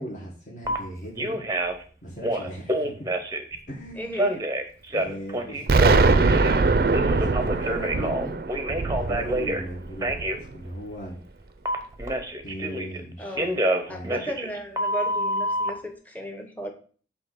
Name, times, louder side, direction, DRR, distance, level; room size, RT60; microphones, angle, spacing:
voice 1, 0.0-1.4 2.0-2.9 3.7-4.1 4.9-6.5 6.8-8.4 8.9-11.2 12.4-13.4 13.9-14.2, equal, 45° left, -3 dB, 1.6 m, -38 dB
Telephone, 0.6-0.8 1.2-1.8 2.2-3.6 4.1-6.6 6.9-9.6 10.0-10.4 11.7-13.0 13.4-15.7, right 1 dB, 20° right, 0.7 m, -27 dB
voice 2, 4.0-4.4 13.2-13.5 13.9-16.7, equal, 10° left, 4 dB, 0.9 m, -35 dB
Explosion, 5.7-10.5, right 3 dB, 55° right, 0.5 m, -22 dB
7.6 x 2.8 x 5.9 m, 0.43 s
head